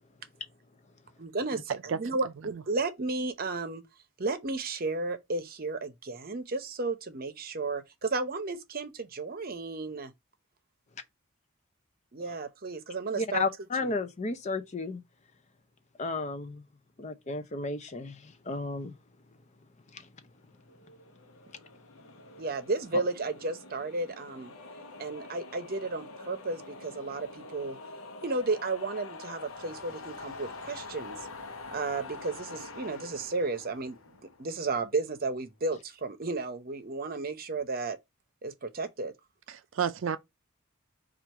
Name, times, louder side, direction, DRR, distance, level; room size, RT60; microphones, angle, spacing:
voice 1, 1.2-3.8 4.2-10.1 12.1-13.4 13.8-13.9 22.4-24.5 25.0-27.8 28.2-31.2 31.7-34.0 34.4-38.0 38.4-39.1, right 3 dB, 45° right, 0.8 m, -33 dB
voice 2, 13.2-15.0 16.0-16.6 17.0-18.9 19.9-20.1, left 3 dB, 35° left, 0.5 m, -33 dB
sound 1, 20.7-35.0, left 3 dB, 85° left, 0.8 m, -46 dB
voice 3, 39.5-40.2, right 7 dB, 65° right, 0.4 m, -31 dB
4.5 x 2.5 x 4.5 m
head